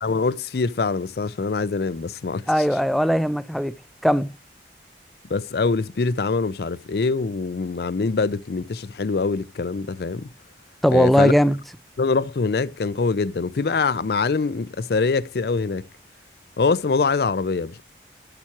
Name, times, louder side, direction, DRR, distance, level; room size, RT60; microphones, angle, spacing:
voice 1, 0.0-2.5 5.3-10.3 10.9-11.3 12.0-15.9 16.6-17.8, left 4 dB, 65° left, 0.5 m, -24 dB
voice 2, 2.5-3.7 4.0-4.3 10.8-11.6, equal, ahead, 0.4 m, -19 dB
12.5 x 6.0 x 2.9 m
head